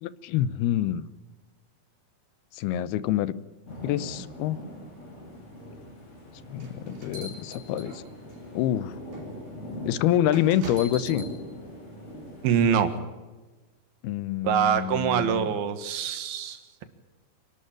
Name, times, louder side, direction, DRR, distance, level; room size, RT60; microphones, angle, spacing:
voice 1, 0.0-1.0 2.5-3.3 3.8-4.6 6.5-8.0 8.5-8.9 9.9-11.3 14.0-15.5, left 11 dB, 85° left, 17 dB, 2.7 m, -26 dB
sound 1, 3.7-13.0, left 1 dB, 45° left, 9.3 m, -41 dB
sound 2, 6.6-8.4 9.1-9.3 10.3-11.3, right 2 dB, 65° right, 5.9 m, -42 dB
voice 2, 12.4-12.9 14.4-16.8, right 8 dB, 80° right, 9 dB, 3.4 m, -24 dB
26.0 x 12.5 x 8.9 m, 1.2 s
omnidirectional pair, 4.4 m